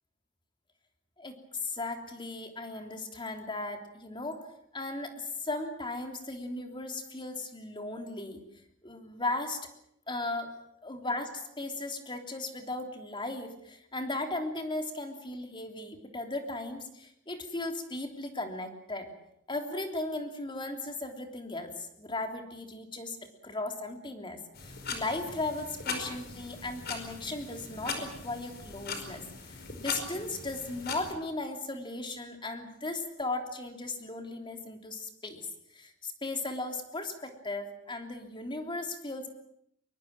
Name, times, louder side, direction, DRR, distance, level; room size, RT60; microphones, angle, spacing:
voice 1, 1.6-4.4 4.7-8.4 8.8-9.6 10.1-10.5 10.8-19.1 19.5-23.2 23.4-35.5 35.7-39.3, left 2 dB, 25° left, 5 dB, 3.3 m, -37 dB
sound 1, 24.5-31.1, left 4 dB, 55° left, 4.9 m, -40 dB
23.5 x 23.0 x 7.5 m, 0.73 s
head